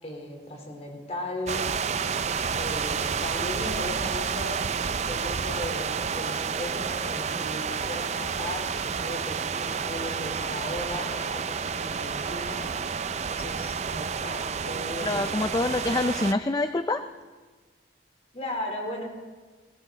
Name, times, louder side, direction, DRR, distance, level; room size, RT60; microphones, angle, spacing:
voice 1, 0.0-1.7 2.6-4.6 5.1-12.7 13.3-15.4 15.7-15.8 18.3-19.0, left 1 dB, 35° left, 1 dB, 3.7 m, -36 dB
sound 1, 1.5-16.3, right 6 dB, 40° right, 0.5 m, -30 dB
voice 2, 15.0-17.0, left 2 dB, 20° left, 9 dB, 0.4 m, -26 dB
20.0 x 18.0 x 4.0 m, 1.4 s
head